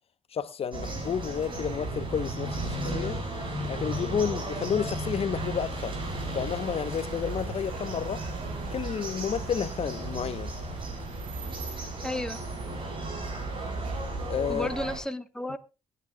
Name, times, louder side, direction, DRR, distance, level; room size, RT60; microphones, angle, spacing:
voice 1, 0.3-3.2 3.7-5.9 6.3-8.2 8.7-10.5 14.3-14.7, left 7 dB, 55° left, 1.0 m, -31 dB
sound 1, 0.7-15.0, right 2 dB, 45° right, 5.9 m, -34 dB
sound 2, 5.3-14.4, right 6 dB, 85° right, 2.5 m, -45 dB
voice 2, 12.0-12.4 14.5-15.6, left 1 dB, 5° left, 1.3 m, -33 dB
22.0 x 9.9 x 2.3 m
cardioid pair, 80°, 12 cm